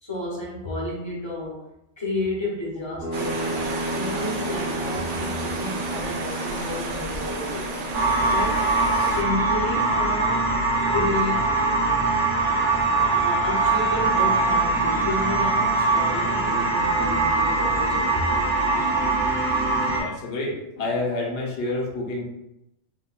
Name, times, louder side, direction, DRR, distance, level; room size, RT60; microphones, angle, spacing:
voice 1, 0.0-1.6 2.0-7.7 8.2-8.7 8.9-10.5 10.8-11.7 13.1-18.7, left 1 dB, 30° left, -3 dB, 0.5 m, -32 dB
sound 1, 3.0-8.8, equal, 15° right, 0.5 m, -33 dB
sound 2, 3.1-9.2, right 2 dB, 60° right, 0.6 m, -32 dB
sound 3, 7.9-20.0, right 3 dB, 80° right, 1.1 m, -22 dB
voice 2, 19.7-22.2, left 2 dB, 75° left, -2 dB, 1.0 m, -29 dB
3.5 x 2.2 x 2.3 m, 0.86 s
omnidirectional pair, 1.2 m